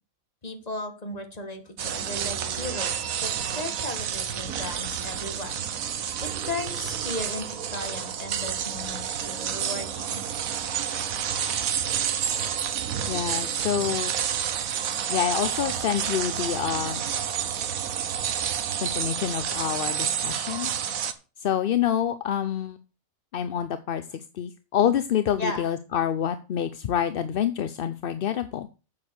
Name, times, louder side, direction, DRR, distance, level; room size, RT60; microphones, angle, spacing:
voice 1, 0.4-5.6 6.2-10.2 25.4-25.6, left 2 dB, 30° left, 6 dB, 1.8 m, -36 dB
sound 1, 1.8-21.1, right 8 dB, 85° right, 1.3 m, -29 dB
voice 2, 13.1-14.1 15.1-17.0 18.8-20.7 21.4-22.8 23.3-28.7, left 9 dB, 55° left, 12 dB, 0.7 m, -27 dB
8.6 x 6.8 x 6.3 m, 0.33 s
omnidirectional pair, 1.4 m